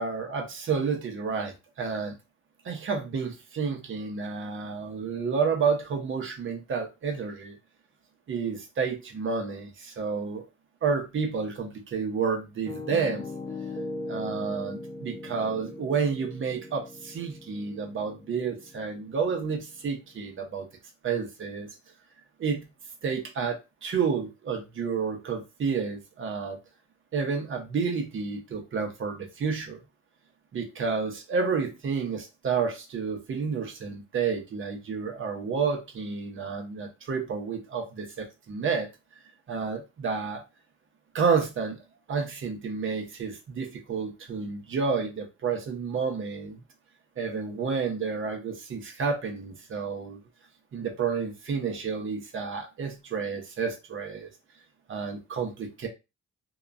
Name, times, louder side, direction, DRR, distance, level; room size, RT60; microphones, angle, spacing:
voice 1, 0.0-2.1 2.6-7.6 8.3-10.4 10.8-13.2 14.1-20.7 21.0-21.7 22.4-22.6 23.0-26.6 27.1-29.8 30.5-38.9 39.5-40.4 41.1-41.8 42.1-46.6 47.2-50.2 50.7-54.3 54.9-55.9, right 5 dB, 40° right, 2 dB, 0.7 m, -30 dB
Piano, 12.7-20.5, left 2 dB, 15° left, 0.4 m, -40 dB
2.9 x 2.2 x 2.4 m, 0.26 s
cardioid pair, 135°, 31 cm